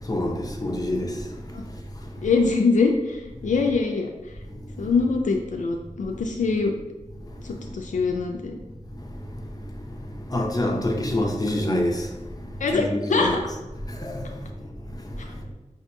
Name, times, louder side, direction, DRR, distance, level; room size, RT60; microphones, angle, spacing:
voice 1, 0.0-1.7 2.0-2.2 4.8-4.9 6.1-6.2 7.3-7.7 9.0-13.4 13.8-15.5, left 1 dB, 30° left, 0.7 m, -28 dB
voice 2, 2.2-4.1 4.8-6.8 7.4-8.6 12.6-13.4, left 4 dB, 75° left, 0.4 m, -23 dB
5.7 x 2.8 x 2.2 m
cardioid pair, 50°, 13 cm